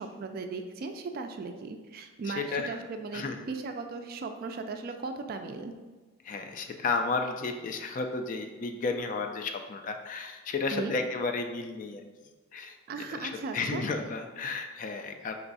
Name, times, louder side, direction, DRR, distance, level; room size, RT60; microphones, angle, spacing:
voice 1, 0.0-5.7 10.7-10.9 12.9-13.8, right 4 dB, 45° right, 6 dB, 0.3 m, -37 dB
voice 2, 2.3-2.8 3.1-3.5 6.2-12.0 12.5-15.3, left 4 dB, 40° left, 5 dB, 0.3 m, -33 dB
3.4 x 3.0 x 4.0 m, 1.3 s
head